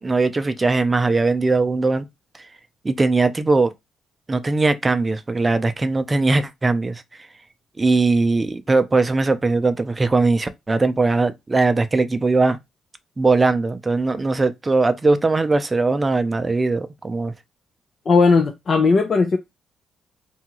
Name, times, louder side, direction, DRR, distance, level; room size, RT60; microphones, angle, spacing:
voice 1, 0.0-2.1 2.8-3.7 4.3-7.0 7.8-12.6 13.2-17.3, right 3 dB, 25° right, 0.5 m, -20 dB
voice 2, 18.1-19.4, left 4 dB, 50° left, 0.5 m, -17 dB
2.7 x 2.4 x 2.9 m
supercardioid pair, 70°, 0 cm